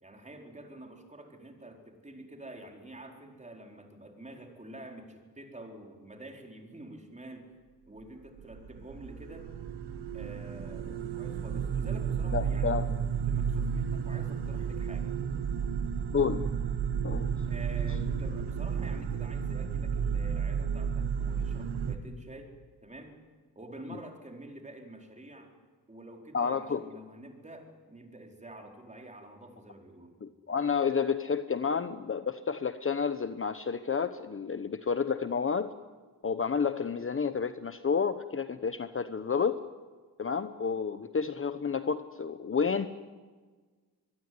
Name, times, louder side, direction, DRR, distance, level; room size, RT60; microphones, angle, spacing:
voice 1, 0.0-7.5 7.9-9.5 10.1-12.9 13.3-15.2 17.5-22.5 22.8-23.1 23.5-25.5 25.9-30.1, right 1 dB, 20° right, 2 dB, 4.6 m, -48 dB
sound 1, 8.4-22.0, right 7 dB, 85° right, 2.0 m, -32 dB
voice 2, 12.3-12.9 16.1-16.5 17.0-17.4 26.3-26.8 30.2-35.7 36.2-39.6 40.2-42.9, left 6 dB, 35° left, 11 dB, 1.0 m, -30 dB
23.5 x 22.5 x 9.7 m, 1.4 s
cardioid pair, 110°, 40 cm